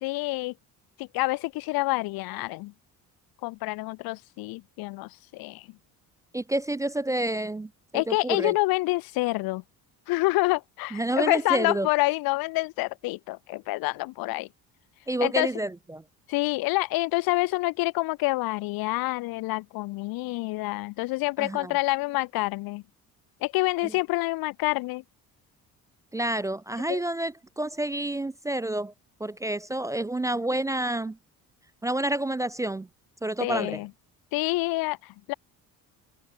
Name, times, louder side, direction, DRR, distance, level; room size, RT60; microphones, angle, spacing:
voice 1, 0.0-0.5 1.0-2.7 3.4-5.7 7.9-9.6 10.1-14.5 15.2-15.5 16.3-22.8 23.4-25.0 26.8-27.0 33.4-33.9 34.3-35.3, left 21 dB, 75° left, 0.5 m, -27 dB
voice 2, 6.3-8.6 10.9-11.9 15.1-16.0 21.4-21.8 23.8-23.9 26.1-28.9 29.2-31.2 31.8-32.9 33.2-33.8, right 1 dB, 10° right, 0.4 m, -29 dB
cardioid pair, 170°, 36 cm